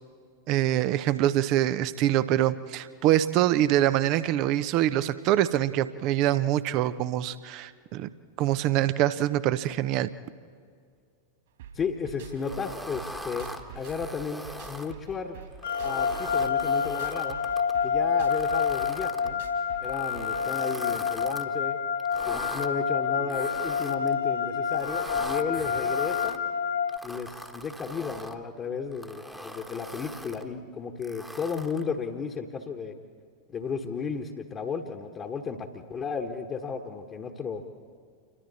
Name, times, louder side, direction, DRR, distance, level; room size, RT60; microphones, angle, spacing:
voice 1, 0.5-8.1 8.4-10.1, right 13 dB, 40° right, 14 dB, 0.9 m, -24 dB
sound 1, 11.6-20.5, right 6 dB, 60° right, 3.8 m, -46 dB
voice 2, 11.7-13.5 13.7-15.4 15.8-17.4 17.8-19.4 19.8-21.8 22.3-26.4 27.0-32.9 33.5-37.6, left 5 dB, 25° left, 1 dB, 1.5 m, -34 dB
sound 2, 12.4-14.9 15.5-17.7 18.2-19.3 19.8-21.5 22.0-22.7 23.3-24.1 24.7-26.4 26.9-28.4 28.9-30.4 31.0-31.9, equal, ahead, 1.5 m, -41 dB
sound 3, 15.6-27.0, left 7 dB, 65° left, 0.8 m, -28 dB
28.5 x 24.0 x 4.2 m, 2.2 s
figure-of-eight pair, 90°, 0 cm